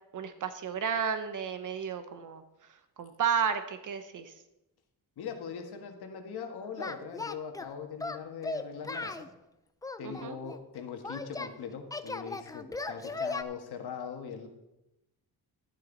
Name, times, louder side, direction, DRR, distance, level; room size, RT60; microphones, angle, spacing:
voice 1, 0.1-2.4 3.0-4.3 10.0-10.4, right 7 dB, 50° right, 10 dB, 1.0 m, -32 dB
voice 2, 5.2-9.3 10.0-14.5, left 6 dB, 70° left, 5 dB, 1.7 m, -41 dB
Singing, 6.8-7.7 8.0-9.3 9.8-11.5 11.9-13.4, left 3 dB, 10° left, 0.4 m, -37 dB
12.0 x 10.5 x 4.0 m, 0.92 s
wide cardioid pair, 155°, 39 cm